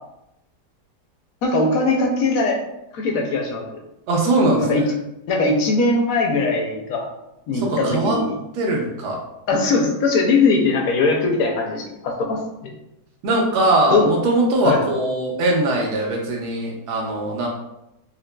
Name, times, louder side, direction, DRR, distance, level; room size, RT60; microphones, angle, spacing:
voice 1, 1.4-2.6 2.9-3.6 4.6-4.8 5.3-7.1 7.5-8.3 9.5-12.7 13.9-14.1 14.6-14.8, left 3 dB, 70° left, 1 dB, 0.9 m, -20 dB
voice 2, 4.1-4.8 7.7-8.2 8.6-9.2 13.2-17.5, right 2 dB, 80° right, -2 dB, 1.2 m, -20 dB
3.9 x 2.8 x 2.2 m, 0.87 s
omnidirectional pair, 1.8 m